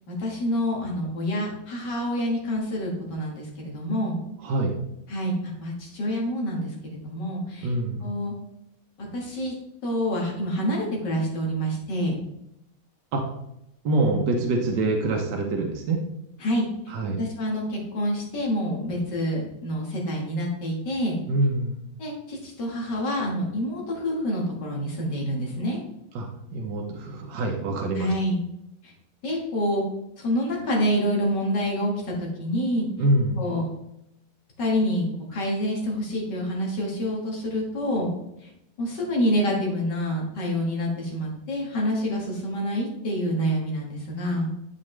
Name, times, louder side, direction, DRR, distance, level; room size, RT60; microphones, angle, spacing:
voice 1, 0.1-4.2 5.1-7.7 8.0-8.3 9.1-9.5 9.8-12.1 16.4-16.7 17.2-21.2 22.0-25.8 27.9-28.4 29.2-29.8 30.2-32.9 33.4-33.7 34.6-38.1 38.4-38.5 38.8-44.5, equal, 70° left, -2 dB, 2.4 m, -27 dB
voice 2, 4.4-4.7 7.6-8.1 13.1-13.3 13.8-16.0 16.9-17.2 21.3-21.8 26.1-28.1 33.0-33.4, right 2 dB, 70° right, 1 dB, 1.6 m, -25 dB
11.0 x 5.0 x 3.3 m, 0.82 s
omnidirectional pair, 1.9 m